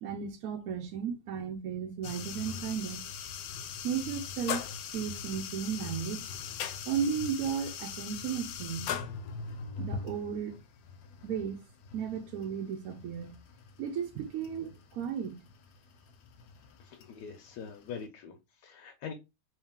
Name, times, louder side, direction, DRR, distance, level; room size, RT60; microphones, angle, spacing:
voice 1, 0.0-3.0 3.8-4.7 4.9-6.3 6.9-8.9 9.8-10.6 11.2-11.6 11.9-13.4 13.8-15.4, right 7 dB, 70° right, 1.0 m, -34 dB
sound 1, 2.0-18.0, left 7 dB, 70° left, 0.9 m, -41 dB
voice 2, 16.8-19.1, left 6 dB, 90° left, 1.3 m, -44 dB
3.2 x 3.1 x 3.5 m
omnidirectional pair, 1.8 m